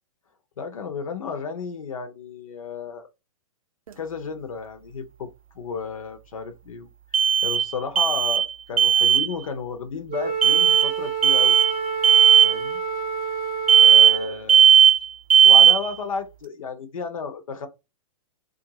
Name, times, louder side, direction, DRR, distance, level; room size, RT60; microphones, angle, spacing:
voice 1, 0.6-3.1 4.0-6.9 7.4-11.6 12.4-12.8 13.8-14.7 15.4-17.7, left 5 dB, 70° left, 0.8 m, -33 dB
sound 1, 3.9-4.0 7.1-8.5 8.8-9.3 10.4-10.9 11.2-11.7 12.0-12.5 13.7-14.2 14.5-15.0 15.3-15.9, right 8 dB, 80° right, 0.4 m, -15 dB
Wind instrument woodwind instrument, 10.1-14.5, right 6 dB, 35° right, 0.7 m, -29 dB
2.5 x 2.5 x 2.9 m
figure-of-eight pair, 110°, 18 cm